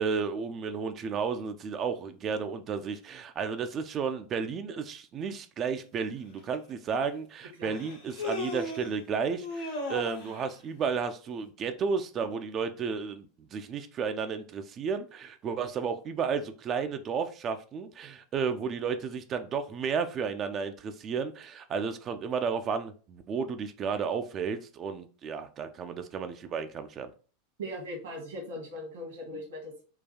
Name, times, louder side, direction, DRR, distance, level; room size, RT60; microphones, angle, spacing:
voice 1, 0.0-27.1, right 6 dB, 35° right, 9 dB, 0.4 m, -33 dB
Human voice, 6.4-6.5 7.7-8.9 9.4-10.4, left 2 dB, 70° left, 1.1 m, -35 dB
voice 2, 27.6-29.8, equal, 70° right, 0 dB, 1.5 m, -39 dB
3.8 x 2.3 x 2.8 m, 0.38 s
figure-of-eight pair, 85°, 0 cm